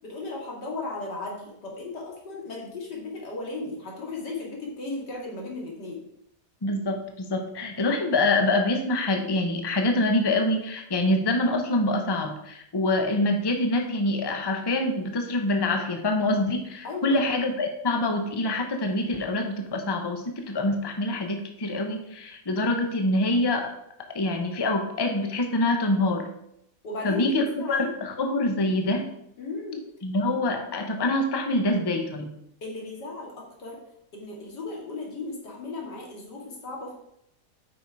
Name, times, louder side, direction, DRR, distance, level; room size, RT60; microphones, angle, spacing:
voice 1, 0.0-6.0 16.8-17.2 26.8-27.9 29.4-29.8 32.6-33.8 34.1-36.9, left 3 dB, 90° left, -1 dB, 2.7 m, -35 dB
voice 2, 6.6-23.7 24.1-26.3 27.0-29.1 30.0-32.3, left 2 dB, 20° left, 4 dB, 0.8 m, -25 dB
8.8 x 5.7 x 4.7 m, 0.77 s
omnidirectional pair, 1.8 m